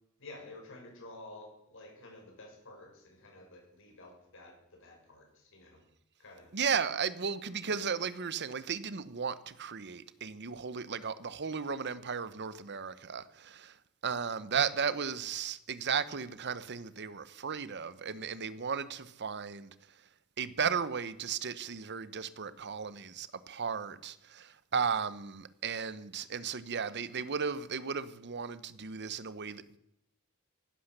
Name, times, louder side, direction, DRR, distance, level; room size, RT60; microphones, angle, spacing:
voice 1, 0.2-5.8 6.2-6.5, left 2 dB, 65° left, 6.4 m, -51 dB
voice 2, 6.5-13.8 14.0-19.7 20.4-29.8, right 6 dB, 55° right, 0.9 m, -35 dB
15.5 x 12.0 x 6.8 m
head